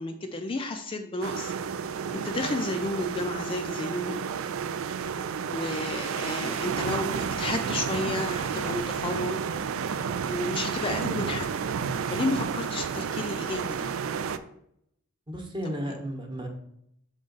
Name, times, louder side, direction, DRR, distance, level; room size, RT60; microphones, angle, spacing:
voice 1, 0.0-1.5 2.1-4.2 5.5-9.6 9.9-11.5 12.1-13.9, left 2 dB, 25° left, 5 dB, 0.4 m, -32 dB
sound 1, 1.2-14.4, right 6 dB, 75° right, 0.4 m, -31 dB
voice 2, 15.3-16.5, equal, 25° right, 3 dB, 1.0 m, -33 dB
6.7 x 3.7 x 3.9 m, 0.75 s
head